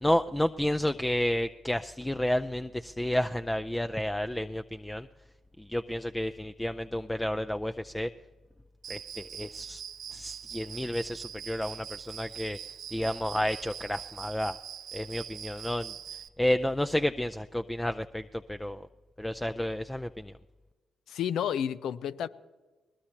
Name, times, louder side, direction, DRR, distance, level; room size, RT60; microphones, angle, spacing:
voice 1, 0.0-5.1 5.6-8.1 8.9-9.8 10.1-12.6 12.9-14.6 14.9-18.9 19.2-20.3, left 1 dB, 10° left, 10 dB, 0.5 m, -31 dB
Cricket, 8.8-16.3, right 9 dB, 70° right, 0.5 m, -43 dB
voice 2, 21.1-22.3, left 9 dB, 80° left, 15 dB, 0.5 m, -31 dB
21.5 x 19.5 x 3.0 m, 1.2 s
supercardioid pair, 50°, 0 cm